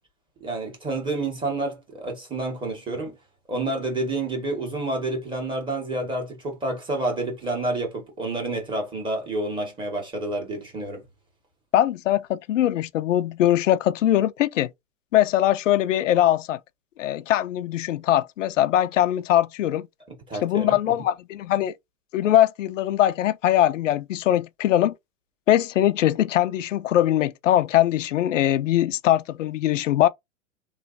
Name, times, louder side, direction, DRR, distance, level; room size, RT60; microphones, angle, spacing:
voice 1, 0.4-3.2 3.5-11.0 20.3-20.9, right 2 dB, 15° right, 1.6 m, -29 dB
voice 2, 11.7-14.7 15.1-16.6 17.0-19.9 20.4-21.7 22.1-24.9 25.5-30.1, left 12 dB, 90° left, 0.5 m, -21 dB
3.2 x 3.0 x 2.6 m
hypercardioid pair, 140°, 37 cm